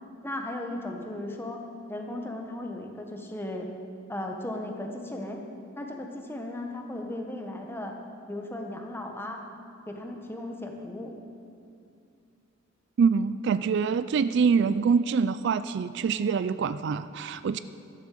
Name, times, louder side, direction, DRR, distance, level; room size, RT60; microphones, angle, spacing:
voice 1, 0.2-1.6 1.9-3.7 4.1-5.4 5.8-7.9 8.3-9.4 9.9-11.1, left 1 dB, 10° left, 2 dB, 1.1 m, -36 dB
voice 2, 13.0-17.6, right 5 dB, 60° right, 13 dB, 0.3 m, -25 dB
12.5 x 7.4 x 7.5 m, 2.5 s
head